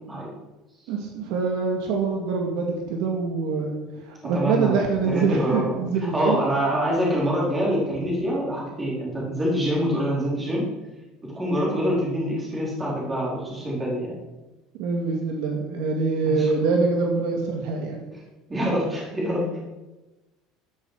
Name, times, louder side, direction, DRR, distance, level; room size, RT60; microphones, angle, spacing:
voice 1, 0.9-3.7 4.1-6.4 14.8-18.0, right 4 dB, 60° right, 1 dB, 2.4 m, -24 dB
voice 2, 4.2-4.7 5.0-10.6 11.2-14.1 16.3-16.4 18.5-19.5, equal, 10° right, -5 dB, 4.5 m, -25 dB
14.0 x 12.0 x 5.1 m, 1.1 s
cardioid pair, 180°, 0 cm